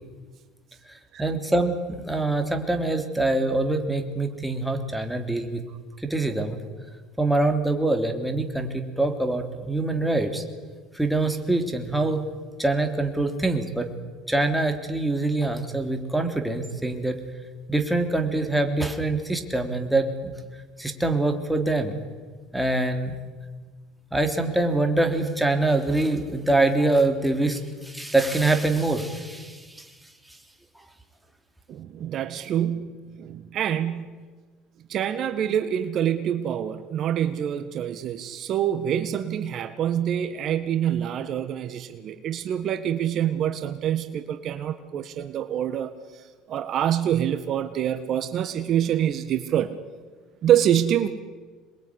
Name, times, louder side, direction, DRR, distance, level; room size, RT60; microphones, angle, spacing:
voice 1, 0.9-5.6 6.0-6.6 7.2-10.4 10.9-12.2 12.6-13.9 14.3-17.2 17.7-20.3 20.8-21.9 22.5-23.1 24.1-29.8, right 2 dB, 5° right, 4 dB, 3.4 m, -24 dB
voice 2, 31.7-34.2 34.9-49.7 50.4-51.1, right 10 dB, 50° right, 9 dB, 1.6 m, -26 dB
26.5 x 22.0 x 9.9 m, 1.5 s
supercardioid pair, 105°, 0 cm